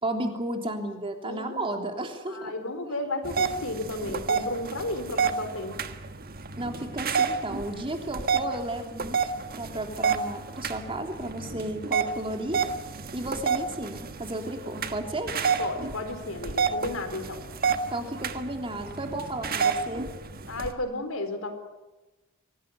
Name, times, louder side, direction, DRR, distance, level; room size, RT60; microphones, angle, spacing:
voice 1, 0.0-2.5 6.6-9.2 9.5-12.6 13.1-15.3 17.9-20.1, right 1 dB, 25° right, 4 dB, 3.4 m, -33 dB
voice 2, 1.2-1.6 2.3-5.8 15.6-17.4 20.5-21.5, left 2 dB, 80° left, 8 dB, 4.1 m, -33 dB
sound 1, 3.2-20.7, right 5 dB, 45° right, 1.4 m, -30 dB
24.5 x 18.5 x 9.4 m, 1.1 s
head